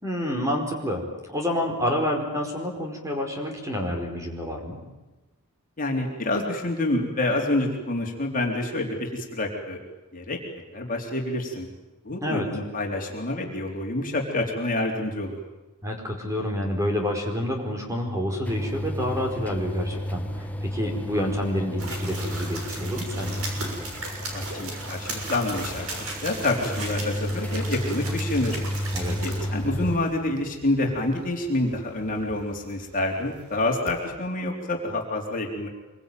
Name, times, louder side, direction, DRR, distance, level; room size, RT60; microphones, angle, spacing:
voice 1, 0.0-4.8 12.2-12.5 15.8-23.4 28.9-29.2, equal, 15° right, 2 dB, 4.8 m, -28 dB
voice 2, 5.8-9.8 10.1-10.4 10.7-11.7 12.0-15.4 24.3-25.9 26.2-28.6 29.2-35.7, left 2 dB, 40° left, 1 dB, 3.9 m, -27 dB
sound 1, 18.5-30.0, equal, 5° left, 1.4 m, -32 dB
sound 2, 21.8-34.1, right 2 dB, 65° right, 6.4 m, -37 dB
25.5 x 23.5 x 9.3 m, 1.1 s
head